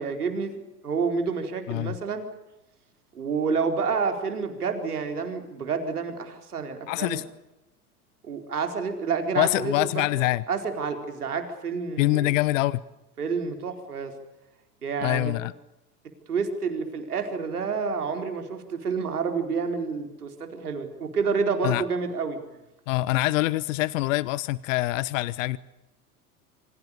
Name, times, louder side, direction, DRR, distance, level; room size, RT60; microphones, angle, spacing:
voice 1, 0.0-2.3 3.1-7.2 8.2-10.1 10.5-12.3 13.2-14.1 14.8-15.3 16.3-22.4, right 5 dB, 75° right, 4.6 m, -29 dB
voice 2, 1.7-2.0 6.9-7.2 9.4-10.4 12.0-12.8 15.0-15.5 21.6-21.8 22.9-25.6, left 17 dB, 55° left, 1.0 m, -25 dB
28.0 x 26.0 x 6.8 m
figure-of-eight pair, 85°, 45 cm